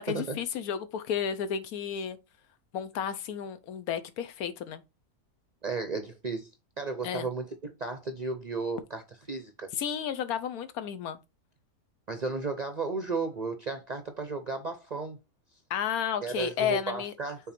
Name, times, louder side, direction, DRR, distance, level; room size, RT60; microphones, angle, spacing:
voice 1, 0.1-2.2 2.7-4.8 7.0-7.3 9.7-11.2 15.7-17.1, left 8 dB, 80° left, 1.2 m, -32 dB
voice 2, 5.6-6.5 6.8-9.0 9.3-9.7 12.1-15.2 16.2-17.4, right 3 dB, 45° right, 0.6 m, -34 dB
5.9 x 3.9 x 4.3 m
omnidirectional pair, 1.6 m